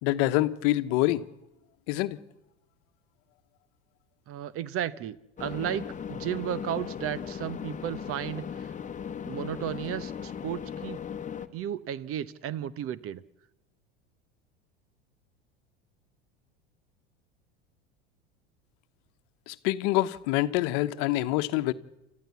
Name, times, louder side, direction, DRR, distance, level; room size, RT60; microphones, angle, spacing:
voice 1, 0.0-1.2 1.9-2.2 19.5-21.7, left 16 dB, 65° left, 1.1 m, -26 dB
voice 2, 4.3-8.7 9.2-11.0 11.5-13.2, right 10 dB, 45° right, 1.0 m, -34 dB
sound 1, 5.4-11.5, left 7 dB, 25° left, 1.2 m, -37 dB
29.0 x 13.5 x 8.4 m
hypercardioid pair, 90°, 31 cm